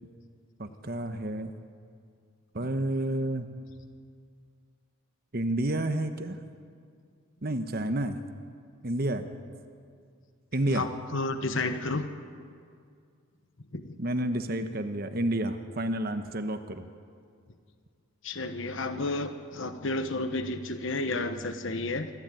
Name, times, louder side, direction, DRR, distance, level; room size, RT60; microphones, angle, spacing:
voice 1, 0.6-1.5 2.5-3.5 5.3-6.4 7.4-8.2 8.8-9.3 10.5-10.9 14.0-16.9, right 1 dB, 45° right, 8 dB, 1.0 m, -30 dB
voice 2, 10.7-12.1 13.7-14.0 18.2-22.1, left 2 dB, 65° left, 9 dB, 1.1 m, -31 dB
24.0 x 15.0 x 9.1 m, 2.2 s
head